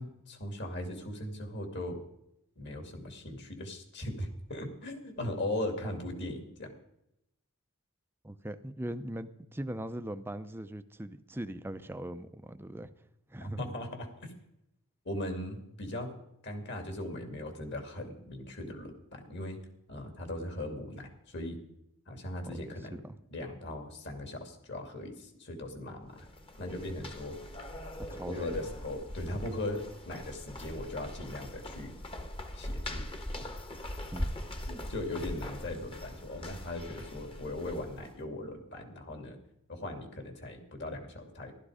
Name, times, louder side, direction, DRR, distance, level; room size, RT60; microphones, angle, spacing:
voice 1, 0.0-2.0 2.6-6.7 13.4-14.1 15.0-16.2 16.4-19.6 19.9-21.6 22.1-23.0 23.3-26.3 26.6-27.4 28.3-31.9 32.5-33.0 34.7-39.4 39.7-41.5, left 1 dB, 50° left, 5 dB, 2.7 m, -39 dB
voice 2, 8.2-12.9 13.3-13.6 22.5-23.0 28.1-28.6 34.1-34.4, right 1 dB, 10° right, 10 dB, 0.6 m, -40 dB
sound 1, 26.0-38.2, left 1 dB, 25° left, 1.3 m, -41 dB
15.0 x 12.5 x 5.0 m, 0.79 s
head